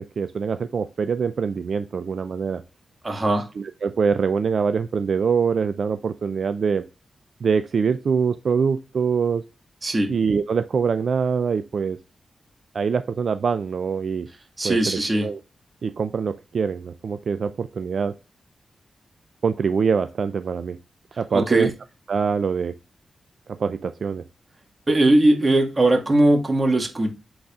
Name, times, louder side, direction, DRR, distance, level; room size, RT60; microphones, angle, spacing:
voice 1, 0.0-2.6 3.6-6.8 7.4-9.4 10.1-12.0 12.7-14.3 14.6-15.4 15.8-18.1 19.4-20.8 21.2-21.7 22.1-22.8 23.5-24.2, right 6 dB, 70° right, 0.4 m, -24 dB
voice 2, 3.0-3.5 9.8-10.1 14.6-15.3 21.3-21.7 24.9-27.1, right 1 dB, 35° right, 1.8 m, -19 dB
10.5 x 4.0 x 2.4 m
cardioid pair, 60°, 0 cm